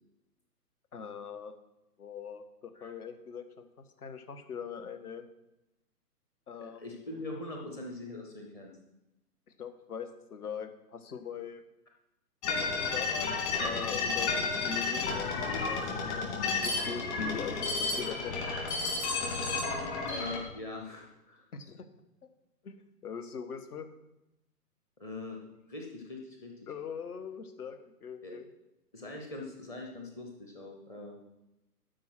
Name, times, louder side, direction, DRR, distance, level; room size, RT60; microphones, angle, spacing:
voice 1, 0.9-1.5 2.0-3.6 4.0-5.2 6.5-6.9 9.6-11.6 12.6-15.9 16.1-17.7 18.0-18.4 21.5-21.8 22.6-22.8 23.0-23.9 26.7-28.5, left 6 dB, 65° left, 9 dB, 1.4 m, -41 dB
voice 2, 6.5-8.7 20.1-21.5 25.0-26.7 28.2-28.3 28.9-31.2, left 2 dB, 5° left, 1 dB, 0.6 m, -42 dB
sound 1, 12.4-20.4, left 4 dB, 45° left, 3.3 m, -32 dB
12.0 x 5.1 x 6.0 m, 0.92 s
figure-of-eight pair, 135°, 48 cm